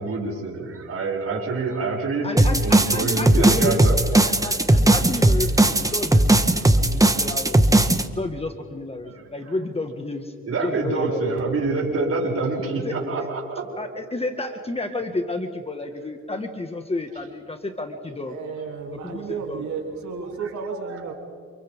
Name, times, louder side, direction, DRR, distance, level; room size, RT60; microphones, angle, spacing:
voice 1, 0.0-2.3 2.6-4.0 4.4-4.5 9.1-9.2 10.5-13.8 21.0-21.1, right 3 dB, 50° right, -2 dB, 7.3 m, -26 dB
voice 2, 2.2-4.0 4.2-6.3 6.5-7.6 8.1-11.6 12.8-13.0 13.8-18.4 19.0-19.6, left 2 dB, 20° left, 5 dB, 1.8 m, -31 dB
sound 1, 2.4-8.0, right 1 dB, 10° right, 1.3 m, -17 dB
voice 3, 6.6-7.2 18.3-21.1, right 5 dB, 70° right, 1 dB, 3.3 m, -33 dB
29.5 x 28.0 x 3.7 m, 2.1 s
cardioid pair, 90°, 30 cm